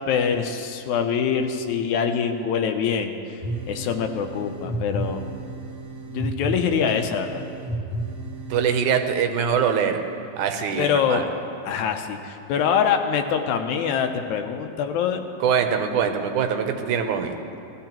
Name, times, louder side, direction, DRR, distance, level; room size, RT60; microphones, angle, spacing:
voice 1, 0.1-3.1 3.7-5.2 6.1-7.4 10.8-11.2 11.6-15.2, left 7 dB, 80° left, 6 dB, 2.0 m, -24 dB
sound 1, 3.4-8.7, right 1 dB, 25° right, 0.9 m, -33 dB
voice 2, 8.5-10.0 10.4-11.3 15.4-17.3, right 7 dB, 90° right, 6 dB, 2.2 m, -23 dB
17.0 x 14.0 x 3.0 m, 2.6 s
omnidirectional pair, 3.5 m